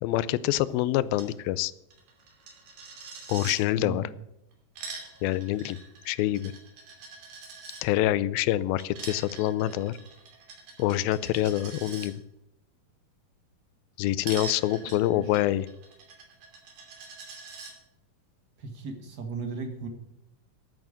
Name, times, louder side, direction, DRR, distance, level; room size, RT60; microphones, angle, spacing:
voice 1, 0.0-1.7 3.3-4.1 5.2-5.8 6.1-6.5 7.8-10.0 10.8-12.2 14.0-15.7, left 14 dB, 85° left, 17 dB, 2.4 m, -26 dB
Coin (dropping), 1.1-1.3 1.6-1.7 1.9-3.6 4.5-7.8 8.8-12.1 14.2-17.7, right 4 dB, 70° right, 4.4 m, -43 dB
voice 2, 3.8-4.1 14.9-15.4 18.6-19.9, right 4 dB, 50° right, 5 dB, 1.2 m, -37 dB
11.0 x 8.9 x 8.8 m, 0.87 s
omnidirectional pair, 4.2 m